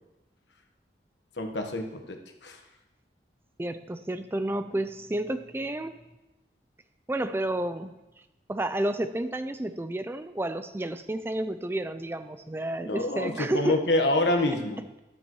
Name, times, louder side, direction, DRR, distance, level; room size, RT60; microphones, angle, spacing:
voice 1, 1.4-2.6 12.8-14.8, left 2 dB, 75° left, 4 dB, 1.2 m, -27 dB
voice 2, 3.6-6.0 7.1-7.9 8.5-13.8, right 1 dB, 15° right, 10 dB, 0.4 m, -31 dB
12.5 x 12.0 x 3.0 m, 1.0 s
head